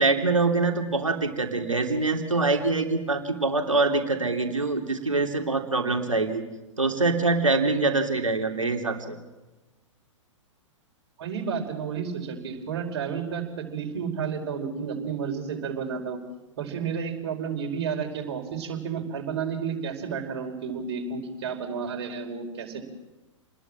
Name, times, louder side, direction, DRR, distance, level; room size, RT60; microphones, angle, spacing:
voice 1, 0.0-6.4 6.8-9.2, right 3 dB, 80° right, 4 dB, 3.2 m, -24 dB
voice 2, 11.2-16.2 16.6-22.8, right 6 dB, 50° right, 3 dB, 5.2 m, -31 dB
28.5 x 21.0 x 7.6 m, 1.1 s
figure-of-eight pair, 105°, 16 cm